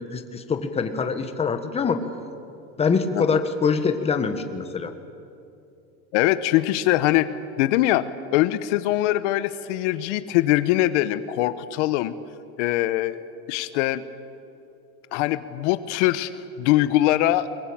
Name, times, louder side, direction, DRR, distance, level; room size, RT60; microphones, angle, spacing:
voice 1, 0.1-2.0 2.8-4.9, left 5 dB, 15° left, 7 dB, 1.4 m, -24 dB
voice 2, 6.1-7.3 7.6-8.1 8.3-12.1 12.6-14.0 15.1-16.3 16.6-17.5, left 15 dB, 70° left, 14 dB, 1.1 m, -22 dB
22.5 x 21.5 x 8.7 m, 2.6 s
supercardioid pair, 150°, 36 cm